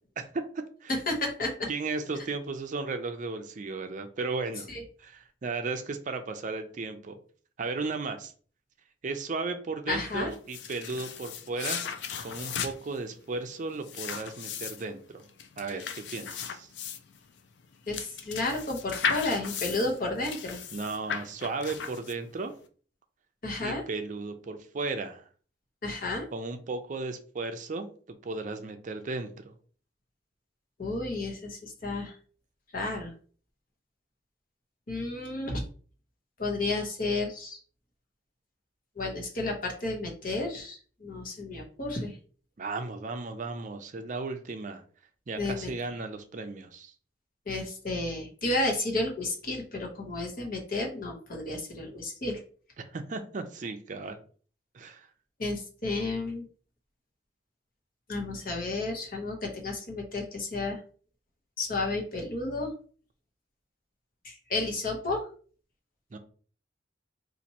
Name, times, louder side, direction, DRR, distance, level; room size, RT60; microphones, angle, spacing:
voice 1, 1.1-1.7 4.7-4.8 9.9-10.3 17.9-20.6 23.4-23.8 25.8-26.3 30.8-32.2 32.7-33.1 34.9-35.6 36.4-37.6 39.0-42.1 45.4-45.7 47.5-52.4 55.4-56.4 58.1-60.8 61.6-62.7 64.2-65.3, left 2 dB, 50° left, 1 dB, 1.0 m, -32 dB
voice 2, 1.7-4.7 5.0-7.1 7.6-8.3 9.0-11.8 12.2-15.3 15.6-16.7 20.7-22.5 23.6-25.2 26.3-29.5 42.6-44.8 45.3-46.9 52.8-54.2 54.7-55.1 66.1-66.2, right 3 dB, 45° right, 7 dB, 0.5 m, -35 dB
sound 1, 10.3-22.4, left 6 dB, 85° left, 0.4 m, -36 dB
4.2 x 2.5 x 2.8 m, 0.43 s
head